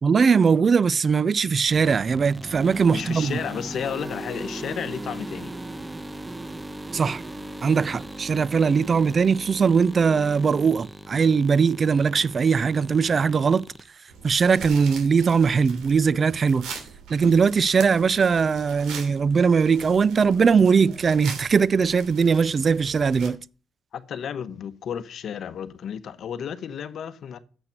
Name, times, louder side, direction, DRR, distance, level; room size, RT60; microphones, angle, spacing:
voice 1, 0.0-3.4 6.9-7.2 7.6-13.6 14.2-16.7 17.1-23.4, right 5 dB, 40° right, 0.4 m, -20 dB
sound 1, 1.7-13.9, right 1 dB, 15° right, 0.8 m, -38 dB
voice 2, 2.9-5.5 23.9-27.4, left 8 dB, 65° left, 0.9 m, -32 dB
sound 2, 14.1-23.3, right 5 dB, 85° right, 2.7 m, -41 dB
8.0 x 5.8 x 6.6 m
cardioid pair, 90°, 0 cm